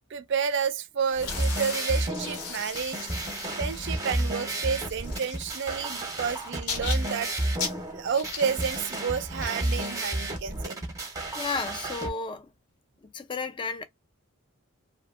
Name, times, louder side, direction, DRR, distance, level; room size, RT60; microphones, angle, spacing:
voice 1, 0.1-3.1 3.6-7.3 7.9-10.8, right 6 dB, 55° right, 0.4 m, -30 dB
sound 1, 1.1-12.1, left 5 dB, 85° left, 0.8 m, -40 dB
sound 2, 1.1-12.1, right 1 dB, 15° right, 0.6 m, -32 dB
voice 2, 11.0-12.5 13.0-13.8, left 4 dB, 20° left, 0.3 m, -33 dB
2.6 x 2.6 x 2.4 m
head